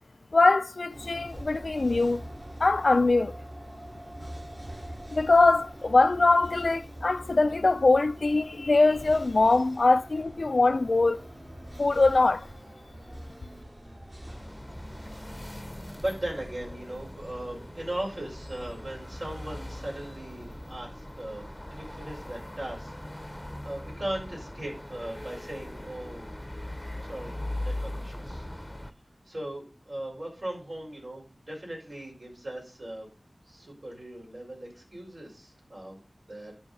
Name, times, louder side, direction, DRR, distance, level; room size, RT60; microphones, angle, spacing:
voice 1, 0.3-2.2 2.6-3.3 5.1-11.2 11.8-12.5, left 3 dB, 80° left, 0.5 m, -22 dB
sound 1, 0.9-20.7, right 1 dB, 35° right, 5.4 m, -44 dB
sound 2, 14.3-28.9, left 1 dB, 15° left, 0.8 m, -40 dB
voice 2, 15.1-15.6 15.9-22.9 23.2-26.3 27.0-28.5 29.2-33.1 33.5-36.0 36.3-36.5, right 1 dB, 70° right, 5.8 m, -38 dB
10.5 x 5.7 x 5.4 m
wide cardioid pair, 45°, 0 cm